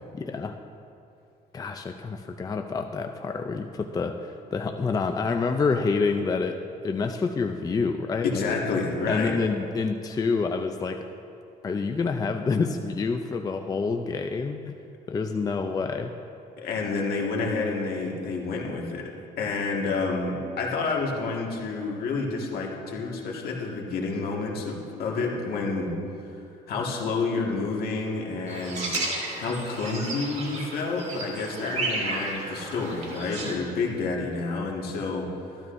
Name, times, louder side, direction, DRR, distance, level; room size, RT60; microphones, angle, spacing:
voice 1, 0.1-0.5 1.5-8.3 9.1-11.1 11.6-14.7 15.1-16.1, left 4 dB, 20° left, 5 dB, 0.4 m, -27 dB
voice 2, 8.2-9.4 16.6-19.1 19.4-25.9 26.7-29.0 29.4-35.6, left 3 dB, 65° left, -1 dB, 1.8 m, -29 dB
sound 1, 28.5-33.5, right 2 dB, 40° right, 2.4 m, -33 dB
sound 2, 28.9-34.5, left 4 dB, 50° left, 1.1 m, -48 dB
14.0 x 12.5 x 2.6 m, 2.6 s
cardioid pair, 110°, 17 cm